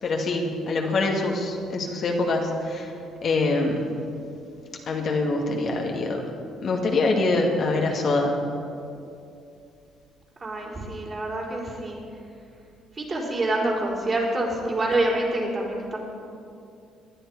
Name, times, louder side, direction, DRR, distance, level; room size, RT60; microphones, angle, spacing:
voice 1, 0.0-2.9 3.2-3.9 4.9-6.2 6.6-8.3, left 2 dB, 55° left, 1 dB, 2.2 m, -24 dB
voice 2, 10.4-12.0 13.0-16.0, right 2 dB, 35° right, -2 dB, 4.3 m, -26 dB
19.0 x 11.0 x 4.8 m, 2.6 s
supercardioid pair, 70°, 0 cm